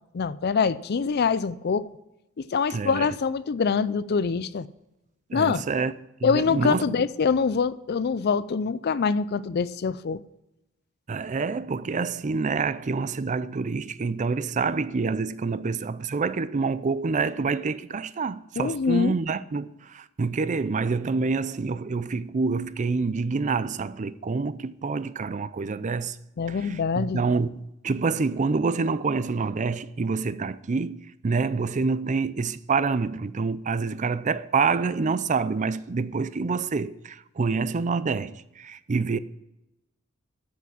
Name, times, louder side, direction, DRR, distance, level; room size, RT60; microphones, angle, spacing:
voice 1, 0.1-1.9 2.4-4.7 5.3-5.6 6.2-10.2 18.6-19.1 26.4-27.2, left 5 dB, 50° left, 0.4 m, -24 dB
voice 2, 2.7-3.2 5.3-5.9 6.2-7.1 11.1-26.2 26.5-39.2, right 4 dB, 35° right, 0.5 m, -27 dB
13.5 x 5.9 x 7.1 m
head